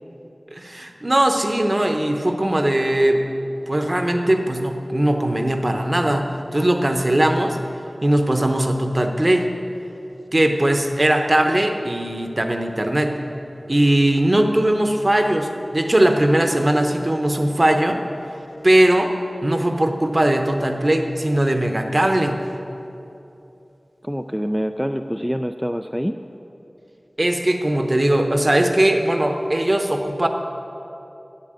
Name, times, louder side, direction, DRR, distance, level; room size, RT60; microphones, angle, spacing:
voice 1, 0.5-3.2 3.7-7.6 8.0-9.5 10.3-13.1 13.7-18.0 18.6-19.1 19.4-22.4 27.2-30.3, right 1 dB, 40° right, 5 dB, 0.9 m, -19 dB
voice 2, 24.0-26.2, equal, 5° right, 6 dB, 0.3 m, -25 dB
8.4 x 8.1 x 7.6 m, 2.8 s
wide cardioid pair, 50°, 0 cm